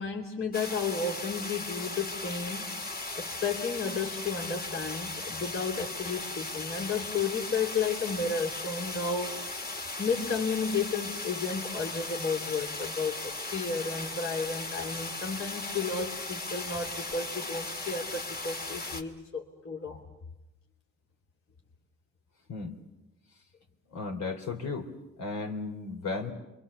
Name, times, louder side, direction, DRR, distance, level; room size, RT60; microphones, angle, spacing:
voice 1, 0.0-2.7 3.1-9.4 10.0-20.0, left 5 dB, 45° left, 0 dB, 3.0 m, -33 dB
sound 1, 0.5-19.0, left 2 dB, 30° left, 2.4 m, -37 dB
voice 2, 23.9-24.9 25.2-26.3, left 4 dB, 65° left, 3 dB, 3.6 m, -34 dB
27.5 x 24.0 x 7.0 m, 0.99 s
cardioid pair, 90°, 30 cm